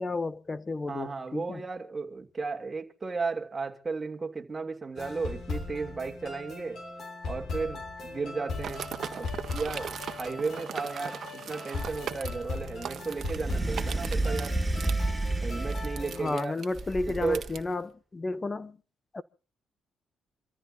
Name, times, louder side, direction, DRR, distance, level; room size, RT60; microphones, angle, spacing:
voice 1, 0.0-1.6 16.2-18.8 19.1-19.2, left 3 dB, 25° left, 1.2 m, -32 dB
voice 2, 0.9-6.8 7.2-14.6 15.4-16.6 17.1-17.4, right 4 dB, 25° right, 2.6 m, -34 dB
sound 1, 5.0-16.4, left 3 dB, 60° left, 6.8 m, -39 dB
sound 2, 8.6-17.6, right 8 dB, 55° right, 1.5 m, -40 dB
sound 3, 13.2-16.2 16.8-17.7, right 2 dB, 10° right, 3.6 m, -30 dB
27.5 x 14.0 x 2.6 m
cardioid pair, 90°, 0 cm